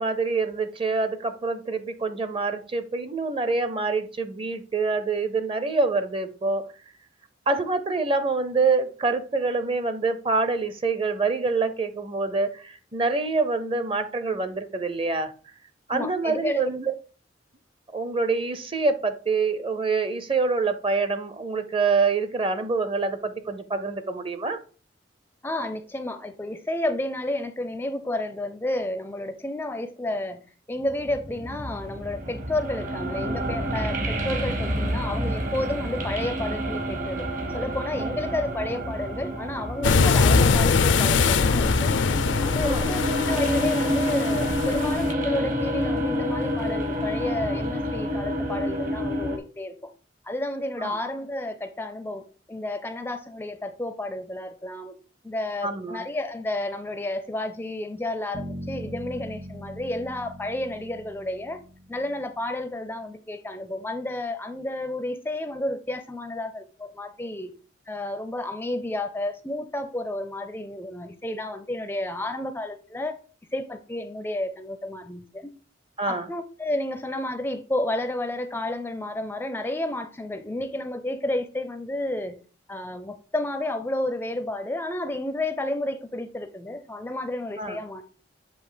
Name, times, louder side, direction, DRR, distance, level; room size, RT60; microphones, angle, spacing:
voice 1, 0.0-6.6 7.5-15.3 15.9-16.9 17.9-24.6 38.0-38.1 42.6-42.9 50.8-51.0 55.6-56.0 76.0-76.3 87.6-87.8, right 4 dB, 30° right, 0.6 m, -26 dB
voice 2, 15.9-16.7 25.4-30.4 30.7-37.3 37.5-41.9 42.4-49.9 50.3-52.2 52.5-55.0 55.2-61.6 61.9-67.5 67.9-73.2 73.5-75.5 76.1-82.4 82.7-88.0, left 1 dB, 10° left, 0.4 m, -31 dB
sound 1, 30.9-49.4, equal, 45° right, 1.1 m, -29 dB
sound 2, 39.8-45.1, left 4 dB, 85° left, 0.5 m, -22 dB
Bass guitar, 58.3-62.4, equal, 70° right, 2.6 m, -40 dB
7.8 x 2.8 x 5.0 m
head